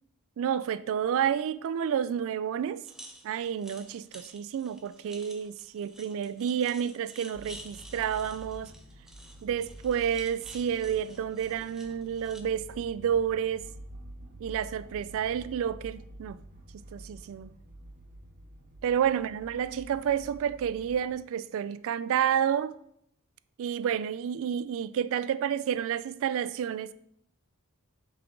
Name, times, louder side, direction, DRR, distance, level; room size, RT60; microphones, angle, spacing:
voice 1, 0.4-2.8 3.2-8.7 9.4-13.7 14.4-16.4 16.9-17.5 18.8-22.8 23.6-26.9, right 8 dB, 65° right, 0.3 m, -30 dB
sound 1, 2.8-12.4, right 1 dB, ahead, 0.6 m, -51 dB
sound 2, 7.3-21.1, right 1 dB, 40° right, 0.9 m, -49 dB
8.6 x 3.7 x 3.7 m
head